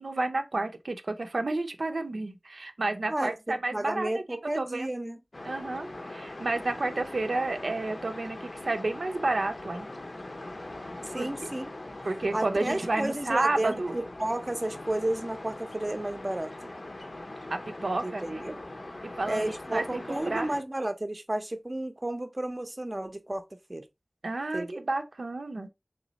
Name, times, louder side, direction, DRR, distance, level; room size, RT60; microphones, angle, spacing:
voice 1, 0.0-4.1 4.6-4.9 5.4-9.9 11.2-11.3 12.0-13.9 17.5-18.4 19.2-20.5 24.2-25.7, right 2 dB, 85° right, 0.6 m, -31 dB
voice 2, 3.7-5.2 11.1-11.7 12.3-16.5 18.0-18.6 19.3-23.4 23.7-23.9 24.5-24.8, right 1 dB, 35° right, 0.6 m, -32 dB
sound 1, 5.3-20.6, left 2 dB, 60° left, 0.7 m, -41 dB
3.3 x 3.1 x 3.9 m
wide cardioid pair, 55°, 0 cm